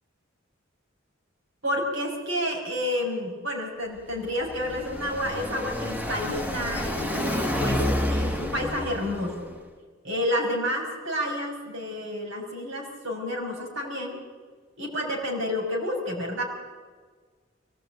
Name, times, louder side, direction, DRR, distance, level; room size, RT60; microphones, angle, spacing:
voice 1, 1.6-9.5 10.0-14.2 14.8-16.4, left 1 dB, 70° right, 0 dB, 5.8 m, -30 dB
Car passing by, 4.0-9.5, left 1 dB, 10° right, 1.4 m, -29 dB
23.0 x 18.0 x 9.0 m, 1.5 s
head